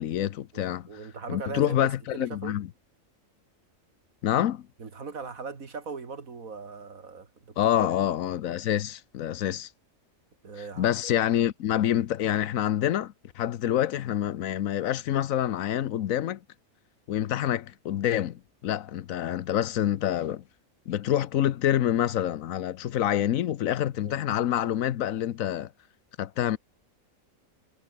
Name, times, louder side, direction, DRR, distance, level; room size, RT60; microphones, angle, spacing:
voice 1, 0.0-0.9 1.3-2.7 4.2-4.7 7.6-9.7 10.8-16.4 17.1-20.4 20.9-25.7 26.2-26.6, left 11 dB, 85° left, 1.2 m, -27 dB
voice 2, 0.9-2.6 4.8-7.9 10.4-11.0 23.9-24.1, right 5 dB, 90° right, 2.7 m, -39 dB
omnidirectional pair, 1.4 m